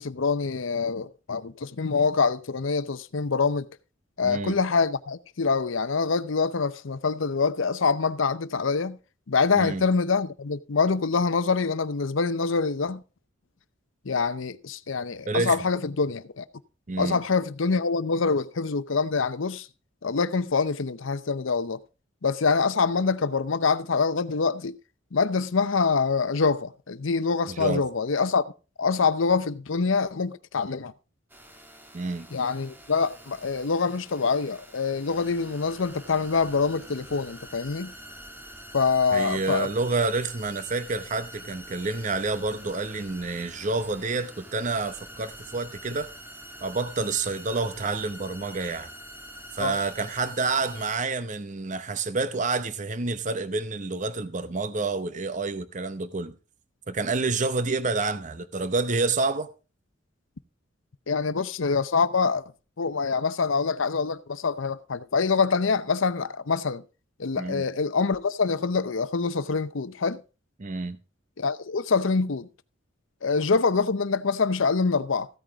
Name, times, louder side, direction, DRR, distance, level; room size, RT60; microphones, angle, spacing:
voice 1, 0.0-3.7 4.2-9.0 9.3-13.0 14.0-16.4 17.0-19.7 20.0-21.8 22.2-24.7 25.1-28.4 28.8-30.9 32.3-37.9 38.7-39.7 49.6-49.8 61.1-62.4 62.8-66.8 67.2-70.2 71.4-72.5 73.2-75.3, left 4 dB, 75° left, 0.7 m, -25 dB
voice 2, 4.2-4.6 9.5-9.8 15.3-15.6 16.9-17.2 27.5-27.9 31.9-32.3 39.1-46.1 46.6-48.9 49.6-56.3 56.9-59.5 67.3-67.6 70.6-71.0, right 3 dB, 40° right, 0.7 m, -28 dB
sound 1, 31.3-51.0, equal, 10° right, 1.5 m, -45 dB
15.0 x 9.0 x 3.5 m
head